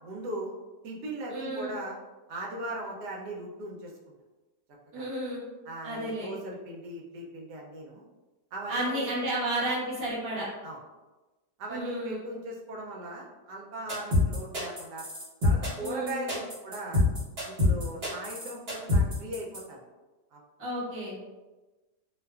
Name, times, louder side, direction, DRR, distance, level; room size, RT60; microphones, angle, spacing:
voice 1, 0.0-0.5 0.8-2.0 2.3-3.9 4.9-5.1 5.6-8.0 8.5-9.3 10.6-10.8 11.6-15.1 15.4-17.0 17.4-19.8 20.3-20.4, right 1 dB, 80° right, -1 dB, 1.2 m, -39 dB
voice 2, 1.3-1.7 4.9-5.5 5.8-6.3 8.7-10.5 11.7-12.2 15.8-16.2 20.6-21.2, right 1 dB, 15° right, -9 dB, 0.6 m, -32 dB
sound 1, 13.9-19.6, left 1 dB, 45° right, 1.0 m, -26 dB
2.7 x 2.3 x 2.2 m, 1.2 s
omnidirectional pair, 1.8 m